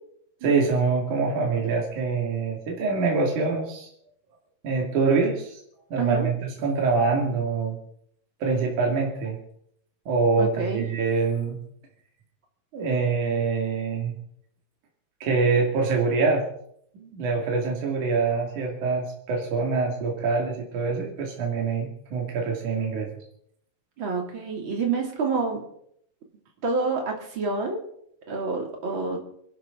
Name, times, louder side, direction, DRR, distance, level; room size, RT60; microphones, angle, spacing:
voice 1, 0.4-3.9 4.6-5.6 5.9-7.8 8.4-9.4 10.1-11.6 12.7-14.2 15.2-16.5 16.9-23.1, right 4 dB, 60° right, 0 dB, 3.8 m, -25 dB
voice 2, 10.4-10.8 24.0-25.6 26.6-27.8 28.3-29.2, right 4 dB, 35° right, 1 dB, 3.2 m, -27 dB
28.0 x 12.5 x 3.9 m, 0.70 s
omnidirectional pair, 3.9 m